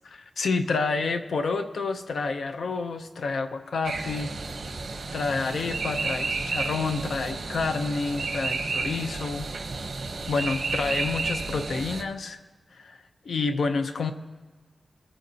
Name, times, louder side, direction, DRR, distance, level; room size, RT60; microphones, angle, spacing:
voice 1, 0.0-4.3 5.1-9.5 10.3-12.4 12.7-13.0 13.2-14.1, left 4 dB, 75° left, 8 dB, 0.6 m, -29 dB
sound 1, 3.8-12.0, right 4 dB, 60° right, 0.9 m, -31 dB
20.5 x 8.9 x 2.8 m, 1.4 s
wide cardioid pair, 155°, 0 cm